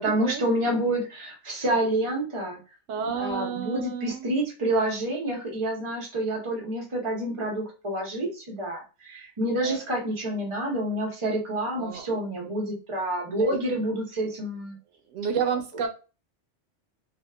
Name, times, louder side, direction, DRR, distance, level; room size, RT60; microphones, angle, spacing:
voice 1, 0.0-2.6 3.1-14.8, right 1 dB, 30° right, -2 dB, 0.8 m, -28 dB
voice 2, 2.9-4.3 9.6-9.8 11.8-12.1 13.3-13.6 15.1-15.9, right 7 dB, 90° right, 5 dB, 0.9 m, -30 dB
2.7 x 2.3 x 2.2 m, 0.32 s
omnidirectional pair, 1.2 m